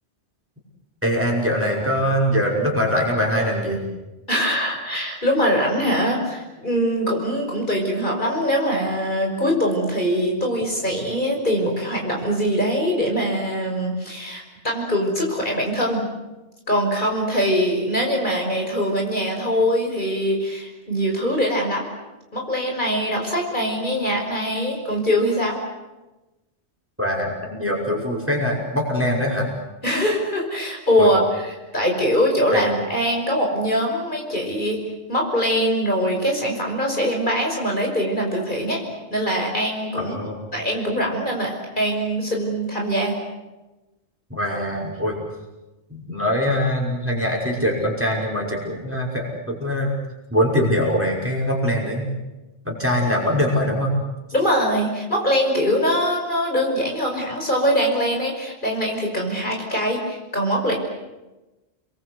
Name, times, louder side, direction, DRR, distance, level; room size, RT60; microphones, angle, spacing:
voice 1, 1.0-3.8 27.0-29.5 31.0-31.1 32.5-32.6 39.9-40.5 44.3-45.2 45.9-49.9 50.3-52.1 52.7-53.9, equal, 10° right, -1 dB, 5.8 m, -22 dB
voice 2, 4.3-16.1 16.7-21.9 22.3-25.6 29.8-34.8 35.1-38.8 39.1-40.2 40.5-43.2 54.3-60.7, equal, 45° left, 0 dB, 5.8 m, -22 dB
29.5 x 22.0 x 8.2 m, 1.1 s
omnidirectional pair, 1.1 m